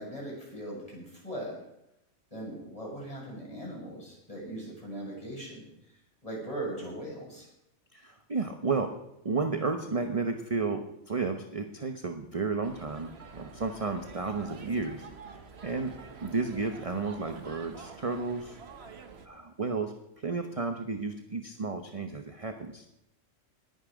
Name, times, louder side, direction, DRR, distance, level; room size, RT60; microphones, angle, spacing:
voice 1, 0.0-1.6 2.3-5.7 6.2-7.5, right 1 dB, 25° left, -4 dB, 7.0 m, -39 dB
voice 2, 7.9-8.9 9.2-15.4 15.6-15.9 16.2-18.6 19.2-22.9, right 4 dB, 30° right, 6 dB, 0.9 m, -32 dB
sound 1, 12.6-19.3, right 5 dB, 50° right, 1.3 m, -47 dB
20.0 x 9.5 x 5.2 m, 0.85 s
omnidirectional pair, 1.4 m